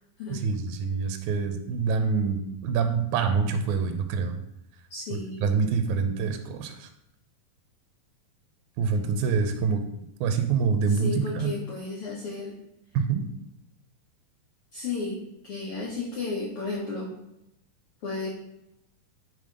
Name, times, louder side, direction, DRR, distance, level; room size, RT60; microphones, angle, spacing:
voice 1, 0.3-4.4 5.1-6.9 8.8-9.8 10.2-11.5 12.9-13.2, right 5 dB, 80° right, 6 dB, 1.8 m, -26 dB
voice 2, 4.9-5.4 10.9-12.5 14.7-17.1 18.0-18.3, left 3 dB, 85° left, -3 dB, 1.2 m, -33 dB
6.8 x 3.5 x 5.0 m, 0.84 s
omnidirectional pair, 3.8 m